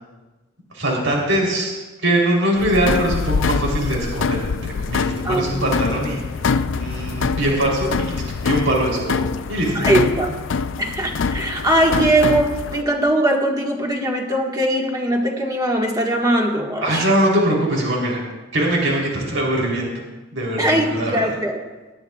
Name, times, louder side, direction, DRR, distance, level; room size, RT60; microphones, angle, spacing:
voice 1, 0.7-6.2 6.7-9.9 16.8-18.2 18.5-19.9 20.3-21.3, right 1 dB, 85° right, -2 dB, 3.5 m, -22 dB
sound 1, 2.6-12.8, left 5 dB, 70° left, 0.4 m, -24 dB
voice 2, 9.7-10.4 10.8-17.1 20.6-21.6, right 1 dB, 20° right, 0 dB, 1.6 m, -20 dB
19.0 x 12.0 x 2.4 m, 1.2 s
head